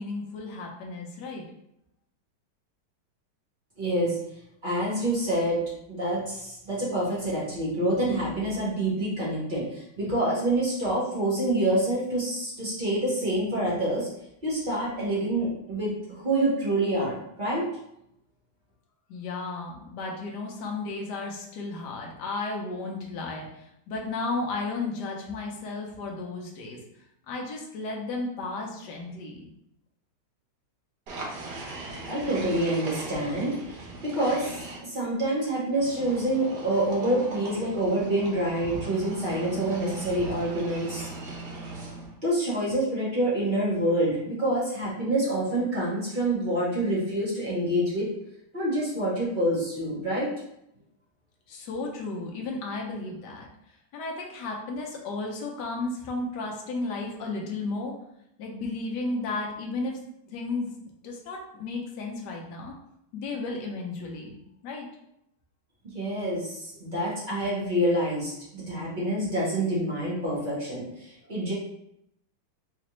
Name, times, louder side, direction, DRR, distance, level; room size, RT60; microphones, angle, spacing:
voice 1, 0.0-1.4 19.1-26.8 27.3-29.5 51.5-57.9 58.4-60.0 60.3-60.7 61.0-62.8 63.1-64.9, left 3 dB, 70° left, 0 dB, 1.1 m, -34 dB
voice 2, 3.8-4.2 4.6-5.6 5.9-14.1 14.4-17.7 32.0-41.1 41.9-48.1 48.5-50.3 65.9-71.5, right 1 dB, 35° right, -8 dB, 0.8 m, -27 dB
sound 1, 31.1-34.8 35.8-42.2, right 2 dB, 65° right, 1.2 m, -39 dB
4.1 x 2.5 x 3.0 m, 0.78 s
omnidirectional pair, 2.3 m